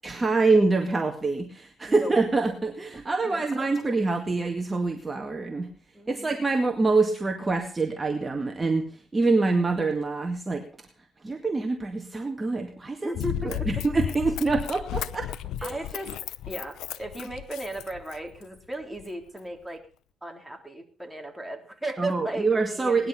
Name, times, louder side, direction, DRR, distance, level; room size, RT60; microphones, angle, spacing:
voice 1, 0.0-5.7 6.1-10.7 11.2-13.1 13.4-15.3 15.6-15.8 22.0-23.1, right 3 dB, 25° right, 4 dB, 2.0 m, -25 dB
voice 2, 3.2-3.7 5.9-6.3 13.0-13.8 15.6-16.2 16.5-19.8 20.2-23.1, right 1 dB, 5° right, 3 dB, 3.8 m, -36 dB
Run, 13.1-18.4 19.0-19.1, left 11 dB, 85° left, 0.8 m, -34 dB
19.0 x 11.5 x 5.7 m, 0.41 s
cardioid pair, 90°, 0 cm